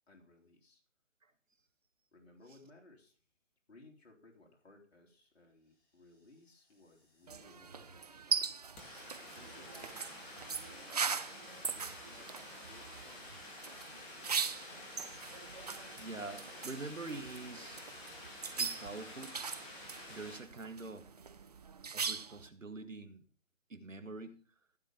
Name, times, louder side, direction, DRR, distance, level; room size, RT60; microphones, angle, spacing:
voice 1, 0.1-0.8 2.1-3.2 3.7-8.5 9.2-10.7 11.7-12.3 12.6-13.3, left 2 dB, 55° left, 0 dB, 3.3 m, -61 dB
sound 1, 6.7-6.8 7.0-20.4, left 1 dB, 10° left, 2.1 m, -50 dB
sound 2, 7.3-22.5, right 5 dB, 30° right, 0.6 m, -40 dB
voice 2, 15.7-17.8 18.6-19.4 20.1-21.1 21.9-23.2 23.7-24.4, right 3 dB, 90° right, 10 dB, 1.9 m, -45 dB
15.0 x 5.3 x 7.0 m, 0.41 s
figure-of-eight pair, 155°, 38 cm